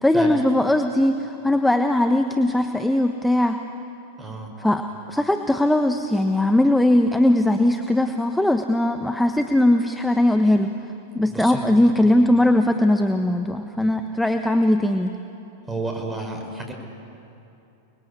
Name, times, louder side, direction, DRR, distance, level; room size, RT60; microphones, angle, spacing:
voice 1, 0.0-3.6 4.6-10.7 11.1-15.2, left 1 dB, 5° left, 6 dB, 1.2 m, -20 dB
voice 2, 4.2-4.5 11.2-12.1 13.8-13.9 15.7-16.7, right 2 dB, 15° right, 3 dB, 5.6 m, -32 dB
29.5 x 20.5 x 8.5 m, 2.8 s
figure-of-eight pair, 95°, 0 cm